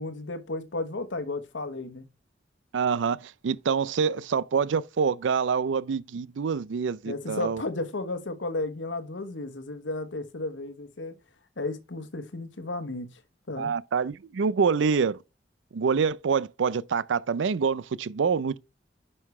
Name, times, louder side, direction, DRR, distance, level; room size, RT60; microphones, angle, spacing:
voice 1, 0.0-2.0 7.0-11.2 11.6-13.1 13.5-13.7, left 2 dB, 80° left, 1.1 m, -33 dB
voice 2, 2.7-7.6 13.6-15.2 15.7-18.6, right 6 dB, 85° right, 0.4 m, -26 dB
9.5 x 5.5 x 3.1 m
head